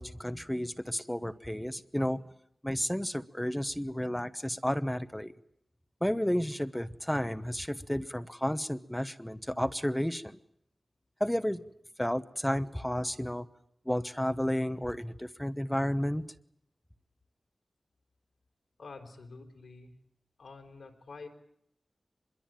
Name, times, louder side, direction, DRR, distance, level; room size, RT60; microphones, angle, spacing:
voice 1, 0.0-2.2 2.6-5.3 6.0-10.4 11.2-11.6 12.0-13.5 13.8-16.2, equal, 5° left, 12 dB, 1.1 m, -32 dB
voice 2, 18.8-20.0 20.4-21.3, left 4 dB, 85° left, 4 dB, 4.2 m, -48 dB
24.5 x 22.0 x 9.1 m, 0.73 s
wide cardioid pair, 95°, 0 cm